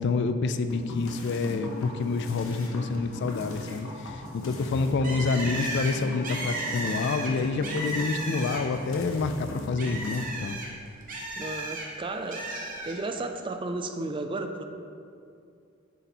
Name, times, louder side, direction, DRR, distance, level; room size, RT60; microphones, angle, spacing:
voice 1, 0.0-10.6, left 4 dB, 60° left, 9 dB, 0.3 m, -28 dB
sound 1, 0.7-10.2, left 2 dB, 90° left, 0.8 m, -39 dB
Bird, 5.0-8.9 9.2-11.9 12.3-13.0, right 2 dB, 45° right, 1.0 m, -34 dB
voice 2, 11.4-12.5 12.8-14.6, right 2 dB, 25° right, 6 dB, 0.4 m, -33 dB
7.1 x 4.1 x 4.3 m, 2.4 s
head